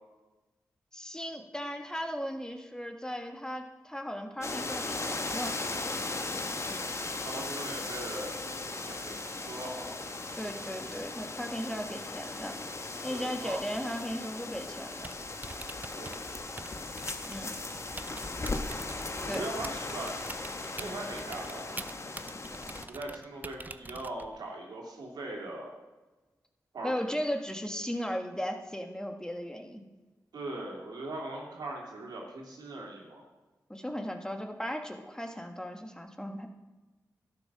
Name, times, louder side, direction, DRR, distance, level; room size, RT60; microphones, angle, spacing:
voice 1, 0.9-5.5 10.3-12.6 13.0-15.1 17.2-17.5 19.3-19.4 26.8-29.8 33.7-36.5, equal, 10° left, 4 dB, 1.6 m, -36 dB
sound 1, 4.4-22.8, left 2 dB, 45° left, 1.3 m, -37 dB
voice 2, 7.2-10.0 13.1-13.6 15.9-16.3 19.2-20.2 20.8-21.9 22.9-25.7 26.7-26.9 30.3-33.2, right 2 dB, 85° right, -2 dB, 2.8 m, -40 dB
Typing, 14.9-24.5, right 2 dB, 25° right, 0.6 m, -46 dB
12.0 x 7.6 x 6.0 m, 1.2 s
cardioid pair, 40°, 7 cm